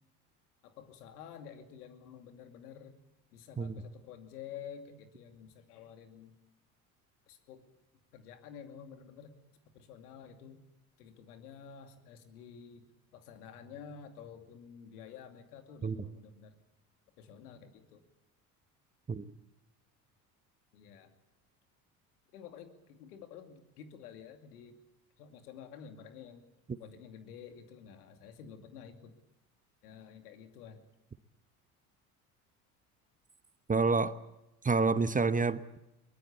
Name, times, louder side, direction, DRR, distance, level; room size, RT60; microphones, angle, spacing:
voice 1, 0.6-2.9 3.3-6.3 7.3-7.6 8.1-9.4 9.7-10.6 11.0-12.9 13.1-16.5 17.2-18.0 20.7-21.1 22.3-24.8 25.2-26.4 26.8-29.1 29.8-30.8, left 7 dB, 75° left, 7 dB, 2.6 m, -50 dB
voice 2, 33.7-34.2 34.6-35.8, right 4 dB, 20° right, 13 dB, 1.0 m, -28 dB
22.5 x 19.5 x 8.4 m, 0.93 s
hypercardioid pair, 65°, 45 cm